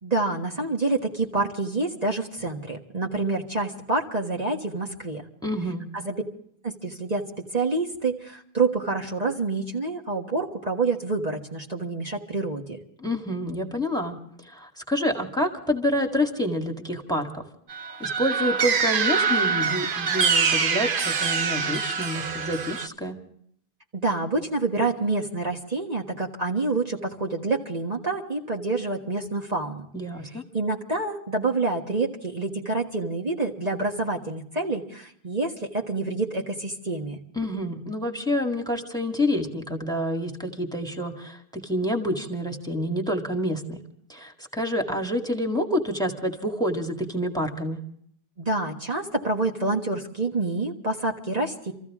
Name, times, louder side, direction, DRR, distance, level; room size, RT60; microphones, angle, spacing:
voice 1, 0.0-5.2 5.9-6.2 6.6-12.8 23.9-29.9 30.3-37.2 48.4-51.7, right 3 dB, 40° right, 0 dB, 1.6 m, -27 dB
voice 2, 5.4-5.8 13.0-14.2 14.4-17.4 18.0-23.2 29.9-30.4 37.4-43.8 44.1-47.8, equal, 5° left, 2 dB, 2.0 m, -28 dB
sound 1, 17.7-22.9, right 5 dB, 60° right, 1.0 m, -24 dB
26.5 x 15.0 x 3.6 m, 0.65 s
omnidirectional pair, 1.0 m